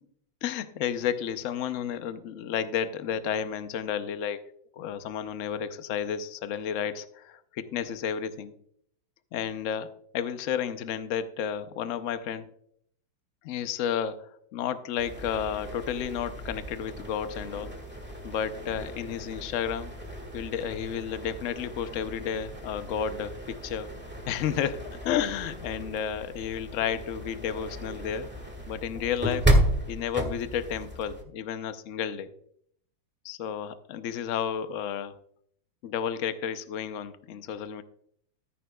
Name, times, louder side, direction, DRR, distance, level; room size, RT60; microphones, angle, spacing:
voice 1, 0.4-4.4 4.8-8.5 9.3-12.5 13.4-17.7 18.2-19.9 20.3-23.9 24.3-28.3 28.7-29.5 29.9-32.3 33.2-35.1 35.8-37.8, left 8 dB, 85° left, 11 dB, 0.6 m, -32 dB
sound 1, 15.0-31.2, right 1 dB, 5° right, 1.3 m, -33 dB
14.0 x 9.9 x 2.3 m, 0.67 s
omnidirectional pair, 2.2 m